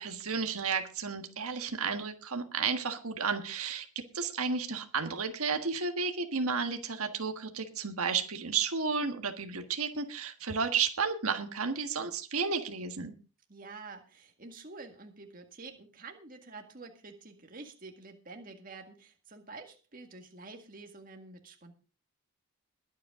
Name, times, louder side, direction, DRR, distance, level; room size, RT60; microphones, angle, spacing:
voice 1, 0.0-3.9 4.1-13.1, right 5 dB, 75° right, 6 dB, 1.5 m, -32 dB
voice 2, 13.5-21.7, right 3 dB, 40° right, 4 dB, 1.9 m, -48 dB
21.5 x 8.4 x 3.7 m, 0.33 s
head